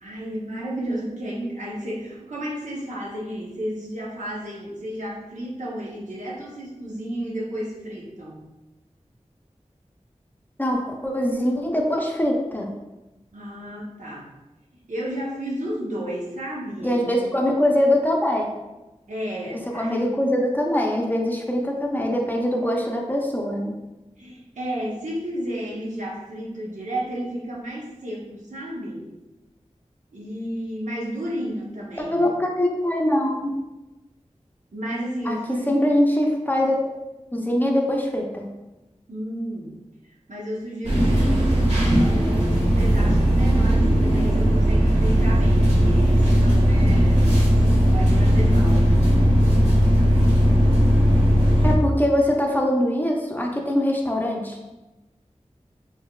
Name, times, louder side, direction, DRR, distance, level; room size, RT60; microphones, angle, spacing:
voice 1, 0.0-8.5 13.3-14.3 14.8-17.3 19.1-20.1 24.2-29.1 30.1-32.3 34.7-35.7 39.1-39.8 40.3-47.3 47.9-48.9, equal, 85° right, -5 dB, 0.9 m, -32 dB
voice 2, 10.6-12.7 16.8-18.5 19.7-23.7 32.0-33.5 35.3-35.4 35.7-36.7 37.3-38.5 51.6-54.6, left 1 dB, 15° left, 0 dB, 0.6 m, -23 dB
sound 1, 40.8-51.7, equal, 65° right, 1.3 m, -17 dB
4.1 x 3.3 x 2.3 m, 1.1 s
wide cardioid pair, 55°, 12 cm